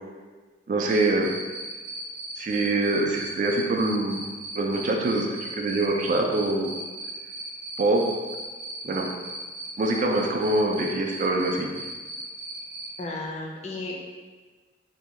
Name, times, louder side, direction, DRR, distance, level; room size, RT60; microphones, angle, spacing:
voice 1, 0.7-1.3 2.4-4.2 4.6-6.7 7.8-8.1 8.8-9.1 9.8-11.7, right 2 dB, 45° right, 2 dB, 0.3 m, -24 dB
Cricket, 0.9-12.9, right 2 dB, 85° right, 0.8 m, -37 dB
voice 2, 13.0-14.0, left 2 dB, 40° left, -1 dB, 0.4 m, -33 dB
2.7 x 2.2 x 3.1 m, 1.4 s
head